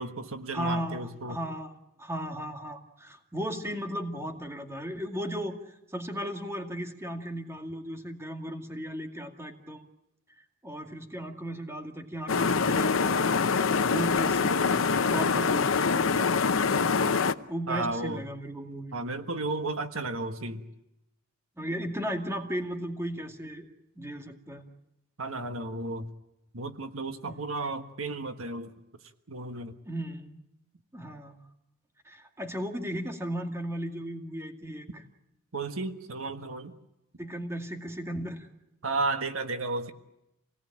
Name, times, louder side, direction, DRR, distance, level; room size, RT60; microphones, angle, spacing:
voice 1, 0.0-1.4 17.7-18.2 18.9-20.6 25.2-26.1 26.5-28.7 29.3-29.7 35.5-36.7 38.8-39.9, right 2 dB, 80° right, 8 dB, 1.5 m, -33 dB
voice 2, 0.5-1.7 2.0-9.8 10.6-16.3 17.5-19.0 21.6-23.7 24.0-24.6 27.2-27.5 29.8-30.4 30.9-31.4 32.1-35.0 37.2-38.5, equal, 15° right, 4 dB, 2.2 m, -36 dB
sound 1, 12.3-17.3, left 5 dB, 70° left, 0.8 m, -25 dB
27.0 x 18.5 x 8.8 m, 0.89 s
head